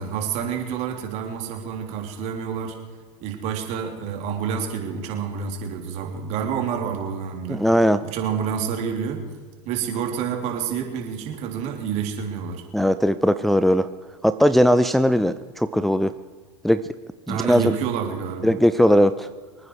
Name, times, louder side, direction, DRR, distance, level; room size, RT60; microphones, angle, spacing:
voice 1, 0.0-2.8 3.2-7.6 8.0-9.2 9.6-12.6 17.3-18.5, right 7 dB, 50° right, 3 dB, 3.5 m, -28 dB
voice 2, 7.5-8.0 12.7-13.9 14.2-16.1 16.6-16.8 17.3-17.7 18.4-19.3, equal, ahead, 10 dB, 0.5 m, -19 dB
26.0 x 9.6 x 4.9 m, 1.5 s
hypercardioid pair, 105°, 14 cm